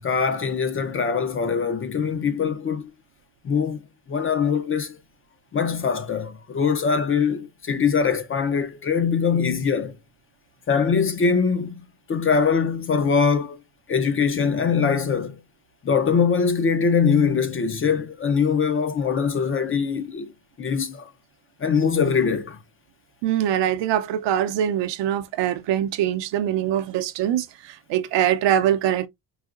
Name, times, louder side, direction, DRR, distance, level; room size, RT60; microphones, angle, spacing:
voice 1, 0.0-2.9 3.4-3.8 4.1-5.0 5.5-9.9 10.7-11.8 12.1-13.6 13.9-15.4 15.8-20.3 20.6-21.1 21.6-22.6, left 6 dB, 30° left, 0.4 m, -22 dB
voice 2, 23.2-29.1, right 10 dB, 70° right, 0.7 m, -23 dB
4.7 x 2.8 x 2.4 m
cardioid pair, 150°, 44 cm